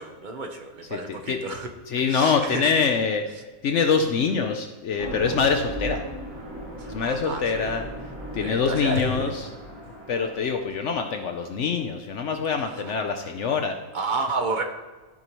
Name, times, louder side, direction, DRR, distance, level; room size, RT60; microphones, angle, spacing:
voice 1, 0.0-1.7 2.1-2.7 6.8-7.7 8.4-9.3 12.9-13.0 13.9-14.6, right 3 dB, 40° right, 4 dB, 0.8 m, -31 dB
voice 2, 0.9-1.4 1.9-3.3 3.6-6.0 6.9-7.9 8.3-9.5 10.1-13.8, left 5 dB, 65° left, 5 dB, 0.9 m, -24 dB
sound 1, 4.9-10.5, equal, 60° right, 2.9 m, -37 dB
13.0 x 5.5 x 3.0 m, 1.3 s
omnidirectional pair, 1.4 m